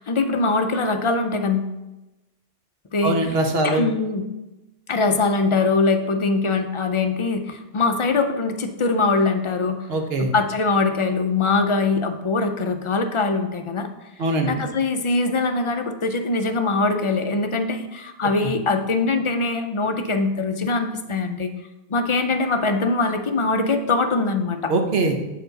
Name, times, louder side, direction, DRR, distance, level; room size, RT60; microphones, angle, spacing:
voice 1, 0.0-1.8 2.9-3.2 3.6-4.2 4.9-9.9 10.3-13.9 14.4-21.5 21.9-24.7, left 3 dB, 45° left, 7 dB, 0.4 m, -22 dB
voice 2, 3.0-3.8 9.9-10.3 14.2-14.5 24.7-25.1, right 2 dB, 70° right, 3 dB, 1.1 m, -21 dB
8.1 x 4.6 x 3.9 m, 1.0 s
omnidirectional pair, 1.1 m